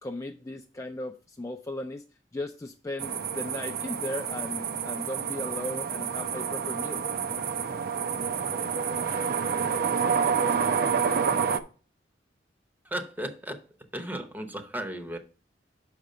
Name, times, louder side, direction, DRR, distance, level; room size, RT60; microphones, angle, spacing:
voice 1, 0.0-2.0 2.3-7.1, left 1 dB, 15° left, 0.4 m, -36 dB
sound 1, 3.0-11.6, right 6 dB, 55° right, 0.5 m, -28 dB
voice 2, 12.8-13.7 13.9-15.2, right 1 dB, 10° right, 0.7 m, -35 dB
5.9 x 5.1 x 5.4 m
head